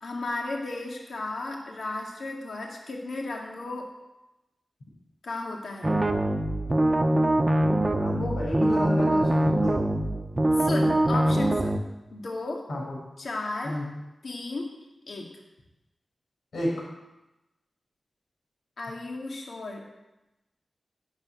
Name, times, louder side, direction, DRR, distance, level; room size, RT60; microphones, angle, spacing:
voice 1, 0.0-3.9 5.2-5.9 10.6-11.7 12.1-12.6 13.2-13.8 14.2-14.7 15.1-15.3 18.8-19.9, left 2 dB, 75° left, -1 dB, 2.2 m, -34 dB
sound 1, 5.8-11.8, right 1 dB, 25° right, 1.0 m, -23 dB
voice 2, 7.9-9.8 12.7-13.0 13.6-13.9 16.5-16.9, left 1 dB, 90° left, -4 dB, 5.9 m, -31 dB
11.5 x 7.1 x 9.2 m, 0.99 s
wide cardioid pair, 105°, 0 cm